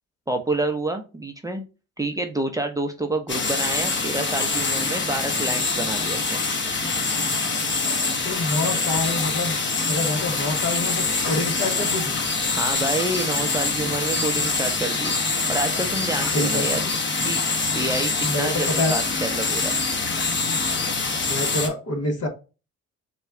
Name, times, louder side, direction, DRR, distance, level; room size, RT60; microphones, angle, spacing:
voice 1, 0.3-1.6 2.0-6.4 12.6-16.8 17.2-17.4 17.7-19.8, right 2 dB, 10° right, 3 dB, 0.6 m, -28 dB
sound 1, 3.3-21.7, left 3 dB, 40° left, 1.1 m, -25 dB
voice 2, 8.2-9.6 9.9-12.2 16.2-16.7 18.2-18.9 21.2-22.3, left 2 dB, 55° left, 3 dB, 1.3 m, -27 dB
4.1 x 2.3 x 3.6 m, 0.31 s
cardioid pair, 90°, 30 cm